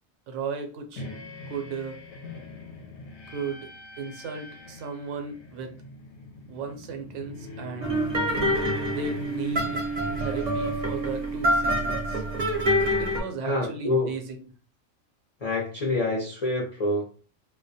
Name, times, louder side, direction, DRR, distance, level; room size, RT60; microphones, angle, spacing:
voice 1, 0.3-1.0 1.5-2.0 3.3-3.7 4.0-5.8 6.5-8.0 8.8-9.8 10.2-12.2 13.0-14.4, right 4 dB, 75° right, 4 dB, 0.9 m, -35 dB
sound 1, 1.0-13.0, right 3 dB, 70° left, 0.8 m, -38 dB
sound 2, 7.8-13.2, equal, 45° right, 0.6 m, -26 dB
voice 2, 13.4-14.1 15.4-17.0, left 2 dB, 50° left, -4 dB, 0.5 m, -26 dB
2.2 x 2.1 x 2.6 m, 0.39 s
omnidirectional pair, 1.3 m